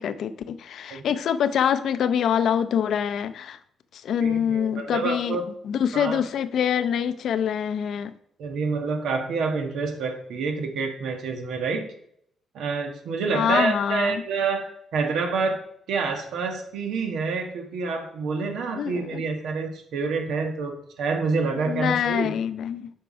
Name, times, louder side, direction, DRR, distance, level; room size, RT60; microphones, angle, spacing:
voice 1, 0.0-3.6 3.9-5.4 5.6-8.1 13.3-14.2 18.7-19.2 21.7-22.9, left 8 dB, 70° left, 13 dB, 0.5 m, -25 dB
voice 2, 4.2-5.5 5.9-6.2 8.4-11.9 12.5-22.4, right 4 dB, 75° right, 5 dB, 1.3 m, -28 dB
7.8 x 4.6 x 5.1 m, 0.70 s
cardioid pair, 90°, 0 cm